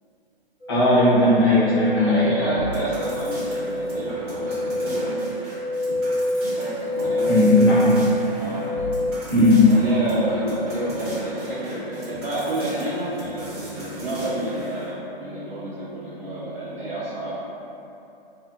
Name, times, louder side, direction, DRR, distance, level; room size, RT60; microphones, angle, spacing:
sound 1, 0.6-9.1, left 1 dB, 80° left, 1.0 m, -27 dB
voice 1, 0.7-2.5 7.3-8.0 9.3-9.7, left 2 dB, 25° left, -8 dB, 0.5 m, -17 dB
voice 2, 1.9-5.2 6.6-7.5 7.9-8.1 8.4-8.9 9.6-17.3, right 1 dB, 70° right, -12 dB, 0.8 m, -29 dB
sound 2, 2.5-14.9, equal, 25° right, 0.6 m, -38 dB
2.7 x 2.7 x 2.3 m, 2.8 s
hypercardioid pair, 160°, 30 cm